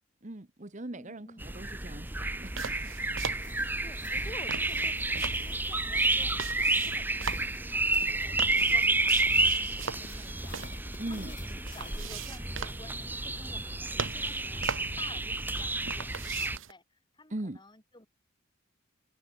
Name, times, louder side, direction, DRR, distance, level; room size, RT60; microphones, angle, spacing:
voice 1, 0.2-2.8 3.5-3.8 11.0-11.3 17.3-17.6, right 1 dB, 35° right, 1.1 m, -40 dB
voice 2, 0.9-1.4 3.8-18.1, left 2 dB, 20° left, 5.4 m, -52 dB
sound 1, 1.4-16.6, right 2 dB, 10° right, 1.1 m, -30 dB
sound 2, 2.4-16.7, right 6 dB, 70° right, 1.2 m, -41 dB
sound 3, 3.3-12.3, left 4 dB, 40° left, 6.0 m, -53 dB
head